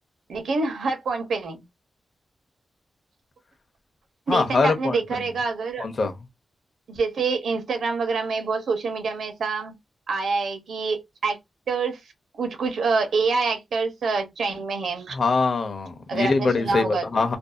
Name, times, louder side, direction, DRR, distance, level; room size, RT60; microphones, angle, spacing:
voice 1, 0.3-1.6 4.3-5.9 6.9-9.7 10.1-11.4 11.7-12.0 12.4-15.2 16.1-17.3, right 4 dB, 80° right, 0.8 m, -26 dB
voice 2, 4.3-5.0 5.8-6.1 15.1-17.4, left 4 dB, 45° left, 0.6 m, -23 dB
2.6 x 2.2 x 2.4 m
wide cardioid pair, 180°, 0 cm